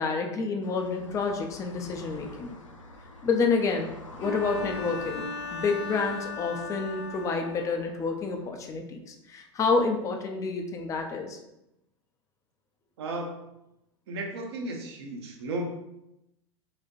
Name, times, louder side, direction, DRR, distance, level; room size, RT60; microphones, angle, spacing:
voice 1, 0.0-2.6 3.2-3.9 4.2-11.4, left 4 dB, 20° left, 3 dB, 0.4 m, -29 dB
sound 1, 0.6-8.5, left 2 dB, 80° left, 0.5 m, -47 dB
Bowed string instrument, 4.2-7.9, left 3 dB, 60° left, 0.9 m, -38 dB
voice 2, 13.0-13.4 14.1-15.7, right 2 dB, 55° right, 1 dB, 0.7 m, -34 dB
4.1 x 2.1 x 2.6 m, 0.86 s
figure-of-eight pair, 90°, 16 cm